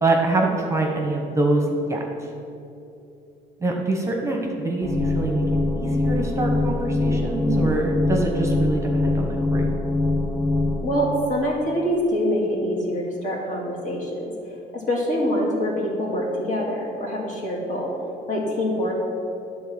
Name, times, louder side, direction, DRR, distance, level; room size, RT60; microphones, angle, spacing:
voice 1, 0.0-2.0 3.6-5.4 5.7-9.7, right 2 dB, 15° right, 1 dB, 1.1 m, -24 dB
sound 1, 4.8-10.8, left 2 dB, 20° left, 1.0 m, -23 dB
voice 2, 10.8-14.2 14.7-17.9 18.3-18.9, equal, 50° left, -3 dB, 2.3 m, -25 dB
10.0 x 3.9 x 7.4 m, 2.7 s
cardioid pair, 110°, 17 cm